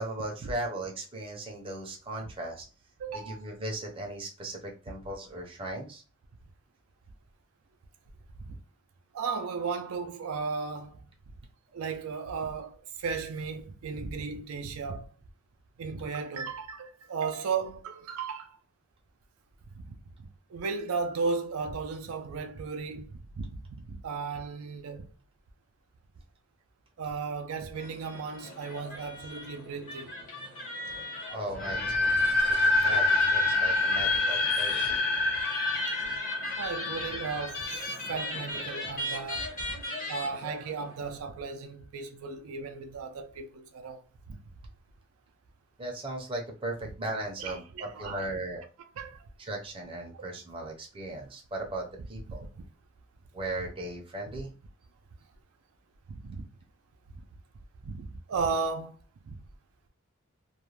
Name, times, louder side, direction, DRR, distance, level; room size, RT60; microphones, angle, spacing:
voice 1, 0.0-2.7 3.1-6.0 31.3-32.1 32.5-33.0 33.3-35.0 45.8-48.6 49.4-52.5 53.3-54.5, right 1 dB, 25° right, 0.6 m, -37 dB
voice 2, 3.0-3.4 8.4-8.6 9.1-11.0 11.7-15.1 15.8-18.6 19.9-25.1 27.0-30.2 36.6-37.7 38.1-39.5 40.1-44.0 44.3-44.4 47.4-48.4 49.0-49.3 50.1-50.3 52.6-52.7 56.1-56.4 57.8-59.0 59.2-59.4, right 5 dB, 85° right, 0.4 m, -35 dB
sound 1, 27.7-41.1, left 1 dB, 40° left, 0.9 m, -38 dB
sound 2, 31.6-38.5, left 2 dB, 70° left, 0.8 m, -27 dB
2.4 x 2.1 x 3.1 m
head